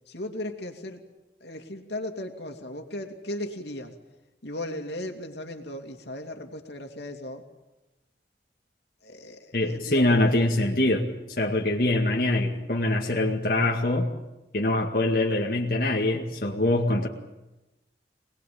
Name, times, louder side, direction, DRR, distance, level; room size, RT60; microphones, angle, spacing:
voice 1, 0.1-1.0 1.4-3.9 4.4-7.4 9.0-10.2, left 1 dB, 75° left, 5 dB, 2.7 m, -36 dB
voice 2, 9.5-11.0 11.4-14.1 14.5-17.1, left 1 dB, 50° left, -1 dB, 2.1 m, -24 dB
25.5 x 20.0 x 8.7 m, 1.0 s
head